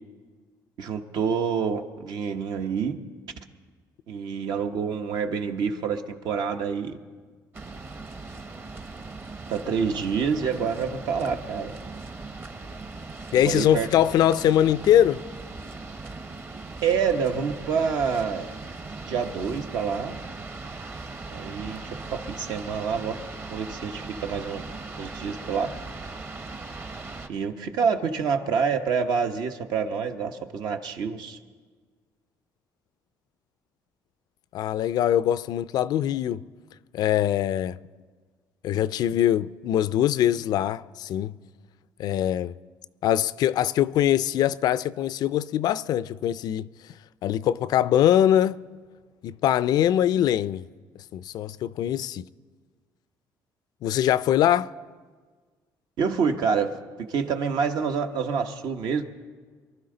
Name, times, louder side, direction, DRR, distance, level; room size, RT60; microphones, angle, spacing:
voice 1, 0.8-3.0 4.1-7.0 9.5-11.8 13.4-13.9 16.8-18.5 19.0-20.2 21.3-21.8 22.1-23.2 23.5-24.6 25.0-25.7 27.3-31.4 56.0-56.8 57.1-59.0, right 6 dB, 75° right, 1.0 m, -27 dB
sound 1, 7.5-27.3, right 3 dB, 30° right, 0.9 m, -39 dB
voice 2, 13.3-15.2 34.5-36.4 36.9-37.8 38.6-41.4 42.0-42.6 43.0-46.7 47.2-48.6 49.2-50.7 51.1-52.3 53.8-54.7, left 11 dB, 70° left, 0.4 m, -22 dB
23.5 x 12.5 x 3.9 m
cardioid pair, 105°, 7 cm